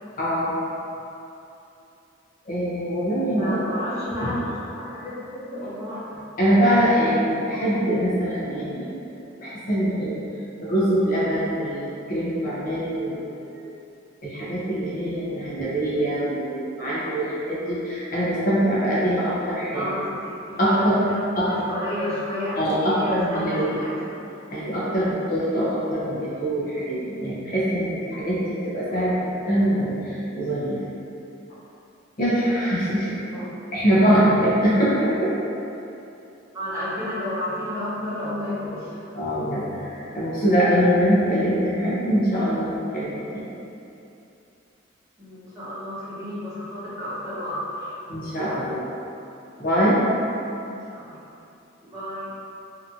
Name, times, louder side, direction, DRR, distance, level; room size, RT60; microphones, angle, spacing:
voice 1, 0.2-0.5 2.4-3.6 4.2-4.3 6.4-9.0 9.4-10.2 10.6-13.5 14.2-19.9 20.6-21.0 21.4-21.5 22.6-23.8 24.5-29.2 29.5-30.8 32.2-33.1 33.7-35.3 39.1-43.5 48.1-48.9 49.6-50.0, equal, 45° left, -8 dB, 0.6 m, -23 dB
voice 2, 3.4-6.2 19.7-21.2 21.5-23.9 28.9-29.3 33.3-34.1 36.5-39.1 45.2-47.9 50.6-51.2 51.8-52.3, left 1 dB, 15° right, -12 dB, 0.7 m, -32 dB
2.8 x 2.5 x 2.4 m, 2.8 s
head